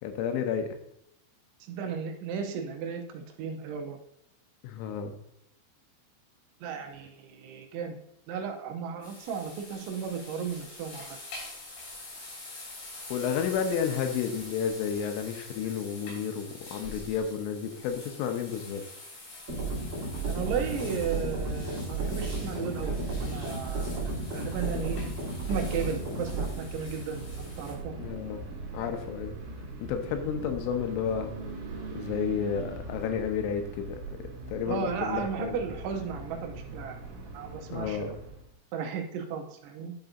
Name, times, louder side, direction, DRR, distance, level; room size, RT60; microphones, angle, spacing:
voice 1, 0.0-0.8 4.6-5.1 13.1-18.8 28.0-28.4 28.7-29.3 29.8-31.3 31.9-35.6 37.7-38.2, left 7 dB, 90° left, 6 dB, 3.2 m, -31 dB
voice 2, 1.7-4.0 6.6-8.0 8.3-11.2 20.3-25.0 25.5-27.9 34.7-37.0 37.3-38.2 38.7-39.9, right 6 dB, 80° right, 4 dB, 3.0 m, -35 dB
sound 1, 9.0-27.7, left 2 dB, 65° left, 5.5 m, -46 dB
sound 2, 19.5-26.5, right 3 dB, 30° right, 2.3 m, -33 dB
sound 3, 19.8-38.5, right 2 dB, 60° right, 2.4 m, -42 dB
10.5 x 5.7 x 2.6 m, 0.77 s
omnidirectional pair, 5.6 m